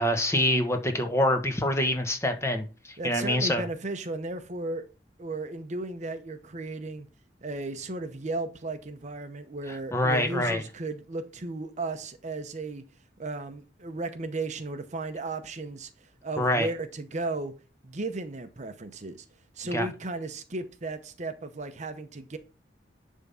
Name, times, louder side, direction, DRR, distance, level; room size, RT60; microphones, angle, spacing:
voice 1, 0.0-3.6 9.9-10.6 16.4-16.7 19.7-19.9, left 1 dB, 15° left, 1.2 m, -25 dB
voice 2, 3.0-4.8 5.2-7.1 7.4-12.8 13.2-17.5 17.8-19.2 19.6-22.4, right 2 dB, 45° right, 0.8 m, -35 dB
10.5 x 3.6 x 5.5 m
head